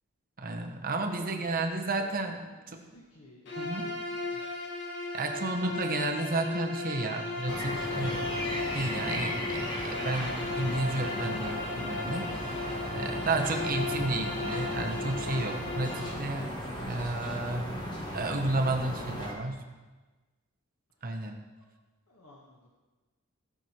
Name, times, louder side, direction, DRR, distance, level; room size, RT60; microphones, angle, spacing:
voice 1, 0.4-2.4 2.7-2.8 3.6-3.9 5.1-8.2 8.7-16.5 16.8-17.8 18.1-19.6 21.0-21.4, right 2 dB, 40° right, 3 dB, 1.2 m, -32 dB
voice 2, 1.1-2.1 2.4-4.0 4.3-4.5 7.7-8.2 20.9-21.1 21.6-21.7 22.1-22.7, left 1 dB, 90° left, -4 dB, 1.6 m, -55 dB
Bowed string instrument, 3.4-16.2, left 3 dB, 55° left, 1.6 m, -36 dB
sound 1, 7.5-19.3, equal, 20° left, 1.7 m, -36 dB
17.5 x 6.3 x 4.5 m, 1.3 s
head